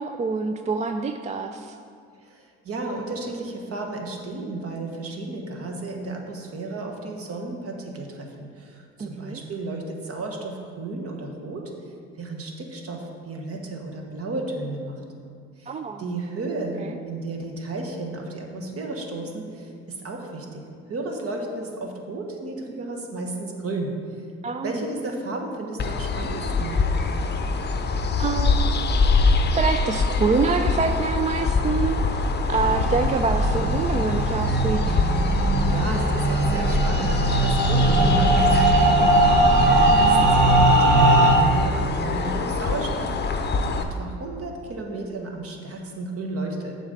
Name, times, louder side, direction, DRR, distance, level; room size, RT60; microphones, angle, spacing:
voice 1, 0.0-1.8 9.0-9.4 15.7-16.0 16.8-17.0 24.4-24.9 28.2-29.1 29.6-35.0, right 4 dB, 25° right, 7 dB, 0.3 m, -26 dB
voice 2, 2.2-11.6 12.2-15.0 15.6-20.6 20.9-23.9 24.6-26.8 35.4-43.4 43.7-46.8, right 2 dB, 45° right, 1 dB, 1.3 m, -33 dB
sound 1, 25.8-43.8, left 3 dB, 35° left, 0.7 m, -25 dB
sound 2, 32.5-41.4, right 2 dB, 65° right, 1.1 m, -19 dB
7.1 x 4.1 x 6.5 m, 2.3 s
hypercardioid pair, 60°, 31 cm